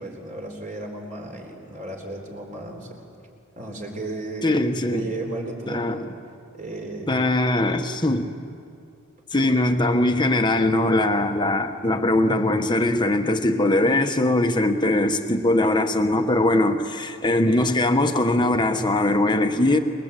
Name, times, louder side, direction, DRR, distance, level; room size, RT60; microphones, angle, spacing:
voice 1, 0.0-3.0 3.6-4.5 4.9-6.1 6.5-7.2, right 2 dB, 35° right, 4.0 m, -34 dB
voice 2, 4.4-5.1 5.7-6.1 7.1-8.3 9.3-19.8, left 1 dB, 20° left, 1.3 m, -21 dB
28.0 x 21.0 x 8.3 m
head